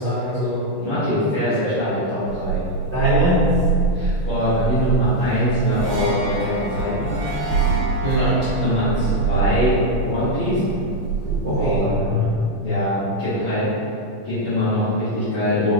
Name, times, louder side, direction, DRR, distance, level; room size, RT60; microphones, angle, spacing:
voice 1, 0.0-0.6 2.9-3.5 8.0-8.4 11.4-12.3, equal, 55° right, -15 dB, 1.3 m, -21 dB
voice 2, 0.7-2.6 3.9-7.1 8.5-10.6 11.6-12.1 12.6-13.7 14.2-15.7, equal, 65° left, -15 dB, 1.4 m, -22 dB
sound 1, 2.3-11.8, right 5 dB, 90° right, 2.4 m, -25 dB
5.0 x 3.0 x 2.5 m, 2.5 s
omnidirectional pair, 3.7 m